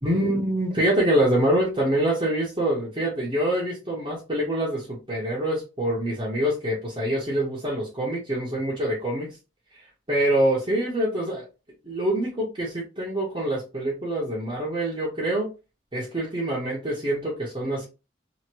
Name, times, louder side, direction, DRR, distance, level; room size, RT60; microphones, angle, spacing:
voice 1, 0.0-9.4 10.1-11.5 11.8-15.5 15.9-17.8, right 1 dB, 30° right, -6 dB, 1.0 m, -25 dB
3.0 x 2.8 x 2.8 m, 0.30 s
head